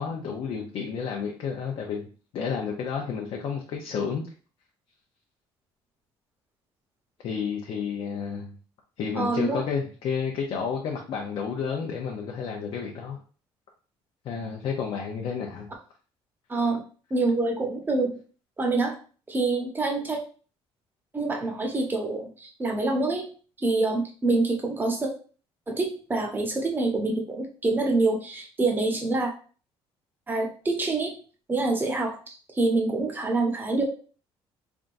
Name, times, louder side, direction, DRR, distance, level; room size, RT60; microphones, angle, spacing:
voice 1, 0.0-4.3 7.2-8.6 9.0-13.2 14.2-15.7, left 6 dB, 60° left, 0 dB, 0.7 m, -31 dB
voice 2, 9.1-9.6 16.5-16.8 17.1-18.1 18.6-19.0 19.3-20.2 21.1-23.3 23.6-25.1 25.7-29.3 30.3-31.1 31.5-33.8, right 3 dB, 20° right, 1 dB, 1.0 m, -26 dB
3.9 x 3.5 x 2.6 m, 0.39 s
cardioid pair, 130°, 10 cm